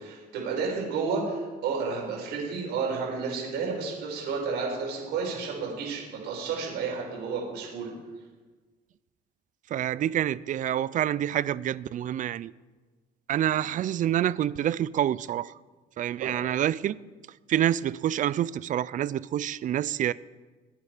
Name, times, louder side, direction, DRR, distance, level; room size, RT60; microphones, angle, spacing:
voice 1, 0.0-7.9 16.2-16.3, right 5 dB, 80° right, 6.0 m, -31 dB
voice 2, 9.7-12.5 13.3-15.5 16.0-17.0 17.5-20.1, right 11 dB, 50° right, 0.5 m, -27 dB
21.5 x 9.7 x 5.1 m
cardioid pair, 110°, 17 cm